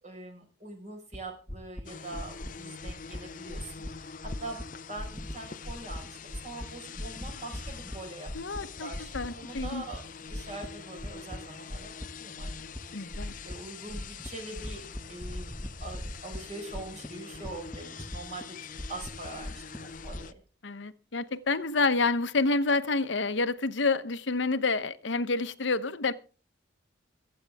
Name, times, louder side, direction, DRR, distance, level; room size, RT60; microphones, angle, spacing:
voice 1, 0.0-4.6 4.9-8.3 8.8-10.0 10.3-11.9 12.2-13.1 13.4-18.6 18.9-20.3, right 2 dB, 40° right, 4.9 m, -43 dB
sound 1, 1.1-1.2 1.5-1.8 2.1-2.5 2.8-3.2 3.5-3.9 4.2-4.6 5.0-5.4 5.6-6.0 6.3-6.7 6.9-8.0 8.3-8.6 8.9-9.3 9.6-10.0 10.3-11.4 11.7-12.1 12.4-12.8 13.1-13.5 13.9-14.3 14.6-16.4 16.7-17.1 17.3-18.4 18.8-20.3, left 1 dB, 5° left, 1.2 m, -38 dB
sound 2, 1.9-20.3, left 6 dB, 45° left, 0.6 m, -45 dB
voice 2, 8.3-9.8 12.9-13.3 20.6-26.1, left 3 dB, 75° left, 0.9 m, -28 dB
25.0 x 8.9 x 3.5 m
head